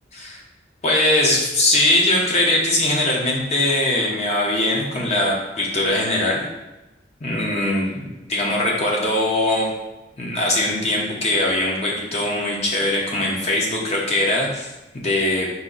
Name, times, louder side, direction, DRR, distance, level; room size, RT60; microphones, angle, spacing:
voice 1, 0.8-6.4 7.2-9.7 10.2-15.5, left 1 dB, 40° left, -2 dB, 0.8 m, -21 dB
4.3 x 2.6 x 3.9 m, 1.0 s
head